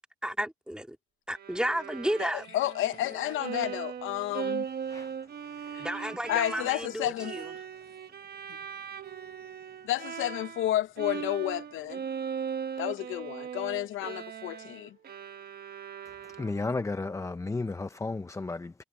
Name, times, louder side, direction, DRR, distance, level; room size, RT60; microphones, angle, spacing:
voice 1, 0.2-1.0 1.3-2.5 5.8-7.5, equal, 5° right, 2.6 m, -32 dB
Bowed string instrument, 1.3-10.7 11.0-16.8, right 7 dB, 50° right, 1.2 m, -39 dB
voice 2, 2.5-4.6 5.7-5.9 6.3-7.3 9.8-12.0 12.8-14.9, left 14 dB, 80° left, 0.7 m, -31 dB
voice 3, 16.4-18.8, left 3 dB, 15° left, 0.6 m, -33 dB
cardioid pair, 90°, 20 cm